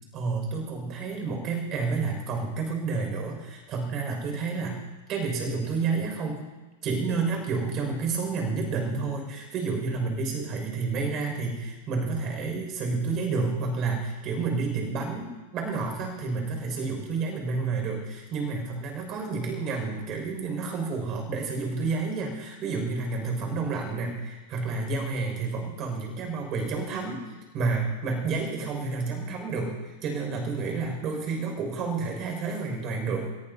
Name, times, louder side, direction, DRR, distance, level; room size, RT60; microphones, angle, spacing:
voice 1, 0.1-4.8 5.1-6.4 6.8-27.2 27.5-33.3, right 4 dB, 40° right, 2 dB, 5.9 m, -30 dB
22.5 x 15.0 x 2.8 m, 1.2 s
hypercardioid pair, 115°, 0 cm